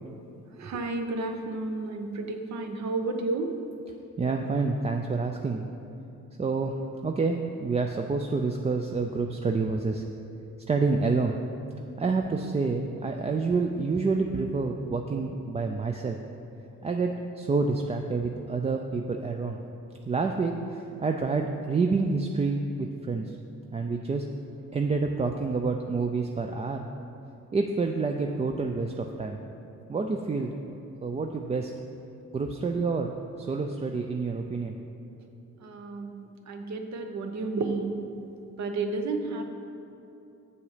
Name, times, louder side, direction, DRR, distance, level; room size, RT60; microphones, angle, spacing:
voice 1, 0.6-3.5 35.6-38.0 38.6-39.5, right 3 dB, 65° right, 5 dB, 0.9 m, -31 dB
voice 2, 4.2-5.6 6.4-10.0 10.7-11.4 12.0-16.2 16.8-19.6 20.1-23.4 23.7-24.3 24.7-26.9 27.5-29.4 29.9-31.7 32.3-34.8, right 4 dB, 20° right, 3 dB, 0.4 m, -28 dB
7.1 x 7.0 x 4.9 m, 2.8 s
cardioid pair, 90°, 30 cm